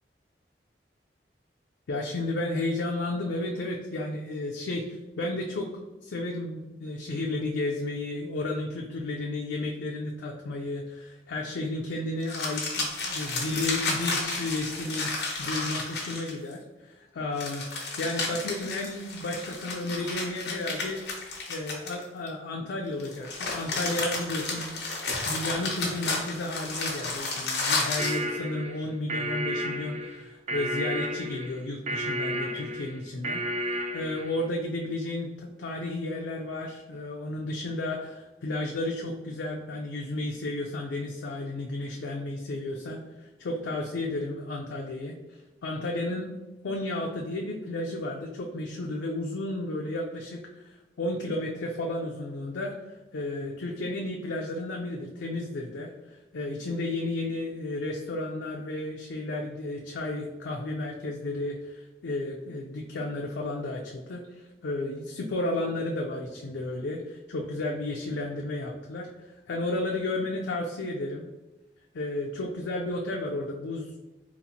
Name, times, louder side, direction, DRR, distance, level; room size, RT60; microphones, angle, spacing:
voice 1, 1.9-5.7 6.0-15.1 15.4-21.0 21.5-24.8 25.3-45.2 45.6-46.3 46.6-71.3 71.9-74.0, left 2 dB, 90° left, 0 dB, 0.4 m, -33 dB
sound 1, 12.2-16.5 17.4-22.3 23.0-28.2, left 3 dB, 65° left, 0.9 m, -32 dB
sound 2, 28.0-34.4, equal, 40° right, 0.3 m, -32 dB
4.0 x 2.4 x 2.7 m, 1.1 s
head